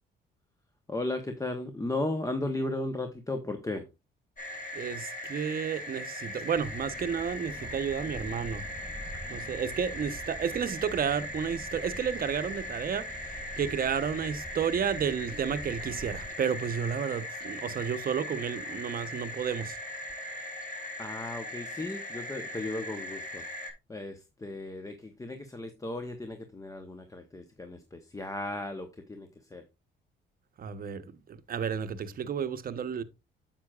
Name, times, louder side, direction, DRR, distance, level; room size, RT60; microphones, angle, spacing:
voice 1, 0.9-3.9 21.0-23.4 23.9-29.6, left 2 dB, 15° left, 0.9 m, -35 dB
sound 1, 4.4-23.7, left 1 dB, 40° left, 3.1 m, -39 dB
voice 2, 4.7-8.6 9.3-19.8 30.6-31.0 31.3-33.0, right 7 dB, 45° right, 0.8 m, -32 dB
sound 2, 6.5-16.3, right 1 dB, ahead, 3.2 m, -46 dB
9.5 x 7.5 x 2.3 m
cardioid pair, 90°, 20 cm